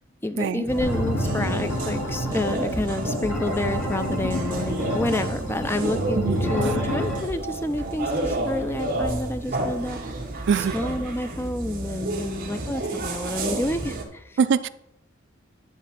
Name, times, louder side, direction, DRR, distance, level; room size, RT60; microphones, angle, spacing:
voice 1, 0.2-10.0 10.7-14.3, left 1 dB, 10° left, 10 dB, 0.4 m, -29 dB
sound 1, 0.7-14.1, right 2 dB, 45° right, 1.1 m, -31 dB
sound 2, 0.8-7.2, equal, 75° left, 1.9 m, -28 dB
voice 2, 6.2-6.8 10.5-10.7 14.4-14.7, right 6 dB, 60° right, 14 dB, 0.3 m, -23 dB
9.3 x 3.5 x 5.8 m, 0.79 s
head